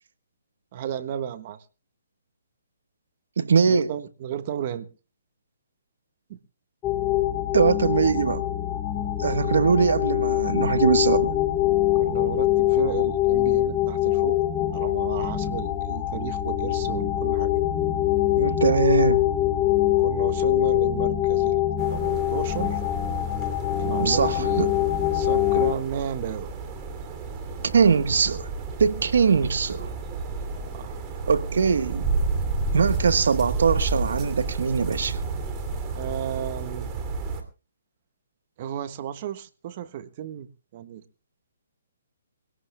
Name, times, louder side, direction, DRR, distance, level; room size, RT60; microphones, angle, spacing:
voice 1, 0.7-1.6 3.7-4.9 6.3-6.4 12.0-14.4 14.7-17.5 20.0-22.8 23.8-24.7 25.1-26.5 30.5-31.0 35.9-36.9 38.6-40.5 40.7-41.0, right 10 dB, 40° right, 1.3 m, -33 dB
voice 2, 3.4-3.9 7.5-8.4 9.2-11.3 18.3-19.2 24.0-24.7 27.6-28.5 28.8-29.9 31.3-32.1 32.7-35.2, right 5 dB, 70° right, 1.2 m, -21 dB
sound 1, 6.8-25.7, left 13 dB, 20° left, 1.3 m, -24 dB
sound 2, 21.8-37.4, right 4 dB, 25° right, 2.6 m, -31 dB
24.0 x 17.5 x 2.2 m
hypercardioid pair, 155°, 0 cm